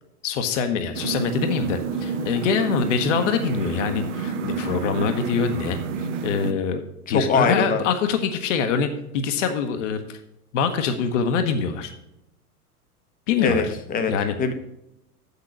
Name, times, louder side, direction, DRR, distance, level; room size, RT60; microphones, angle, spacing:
voice 1, 0.2-6.8 7.1-10.2 10.5-11.9 13.3-13.7 14.1-14.3, left 6 dB, 55° left, 7 dB, 1.0 m, -24 dB
sound 1, 0.9-6.5, right 5 dB, 50° right, 0.9 m, -29 dB
voice 2, 7.1-7.8 13.4-14.1 14.4-14.5, left 5 dB, 20° left, 8 dB, 0.8 m, -22 dB
7.4 x 6.7 x 6.0 m, 0.85 s
figure-of-eight pair, 95°, 46 cm